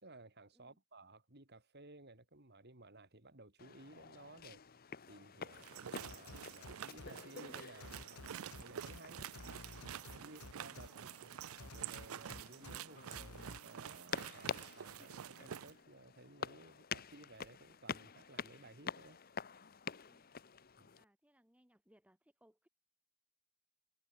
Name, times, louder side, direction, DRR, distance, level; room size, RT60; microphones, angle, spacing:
voice 1, 0.0-4.6 5.1-9.2 10.1-19.2 20.8-20.9, right 2 dB, 45° right, 3.1 m, -58 dB
sound 1, 3.6-21.0, left 6 dB, 40° left, 0.8 m, -49 dB
sound 2, 5.5-15.7, right 9 dB, 70° right, 0.4 m, -49 dB
sound 3, 6.0-7.1 7.8-9.0 9.3-10.9 11.6-12.8 13.1-13.6, left 3 dB, 85° left, 1.5 m, -52 dB
voice 2, 10.9-11.3 20.0-20.3 21.0-22.7, equal, 5° right, 1.5 m, -70 dB
head